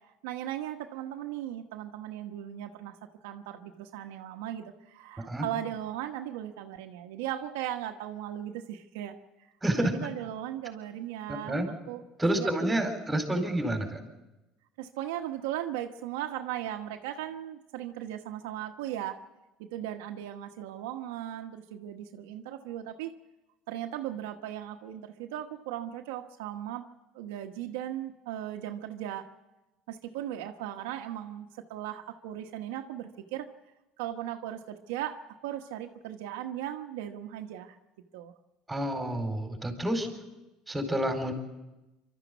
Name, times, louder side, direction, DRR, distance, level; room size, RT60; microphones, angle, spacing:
voice 1, 0.2-9.2 9.8-12.0 12.3-13.4 14.8-19.2 19.6-23.2 23.7-26.8 27.1-29.3 29.9-33.5 34.0-35.2 35.4-37.8 38.1-38.3, right 12 dB, 85° right, 4 dB, 1.1 m, -37 dB
voice 2, 9.6-10.0 11.3-11.7 12.2-14.0 38.7-40.1 40.7-41.3, right 1 dB, 10° right, 4 dB, 4.2 m, -29 dB
25.5 x 13.0 x 8.2 m, 1.0 s
supercardioid pair, 100°, 0 cm